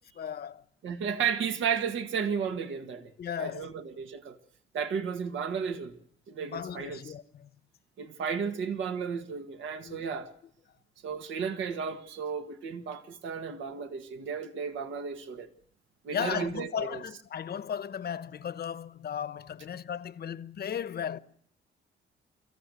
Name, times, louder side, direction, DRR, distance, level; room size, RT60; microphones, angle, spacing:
voice 1, 0.1-0.6 3.2-3.7 6.4-7.5 9.8-10.0 16.1-21.2, left 8 dB, 50° left, 1.0 m, -36 dB
voice 2, 0.8-3.1 3.4-4.4 4.7-6.0 6.3-7.0 8.0-10.3 11.0-15.5 16.1-17.0, right 6 dB, 80° right, 1.8 m, -33 dB
24.0 x 15.0 x 8.2 m
cardioid pair, 90°, 20 cm